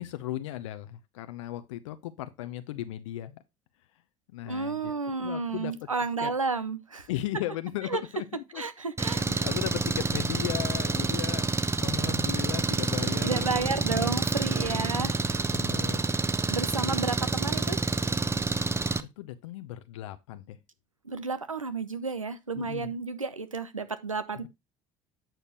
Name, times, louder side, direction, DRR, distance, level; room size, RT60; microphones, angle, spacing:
voice 1, 0.0-3.4 4.3-4.9 5.2-5.9 6.2-6.3 7.1-8.6 9.1-11.5 11.8-14.2 14.6-15.1 15.5-16.0 16.8-17.0 19.0-20.6 22.5-22.9, left 14 dB, 70° left, 0.7 m, -37 dB
voice 2, 4.5-7.1 7.9-8.0 8.5-9.5 13.2-15.5 16.5-17.8 21.0-24.5, right 4 dB, 90° right, 0.8 m, -32 dB
Engine, 9.0-19.0, right 3 dB, 15° right, 0.8 m, -28 dB
9.0 x 6.5 x 3.0 m
figure-of-eight pair, 60°, 17 cm